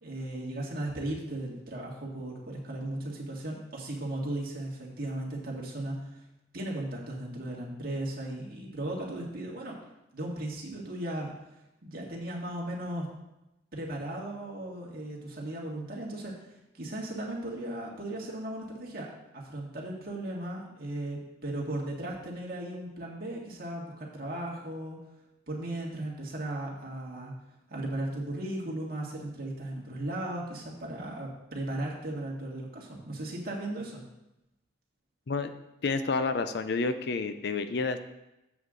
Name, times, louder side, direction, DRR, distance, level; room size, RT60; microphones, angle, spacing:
voice 1, 0.0-6.2 6.5-9.8 10.1-11.3 11.8-13.1 13.7-16.4 16.7-25.0 25.5-27.3 27.7-34.0, right 1 dB, 50° right, -3 dB, 1.9 m, -36 dB
voice 2, 35.8-38.0, left 4 dB, 55° left, 10 dB, 0.5 m, -29 dB
8.1 x 7.7 x 3.8 m, 0.92 s
head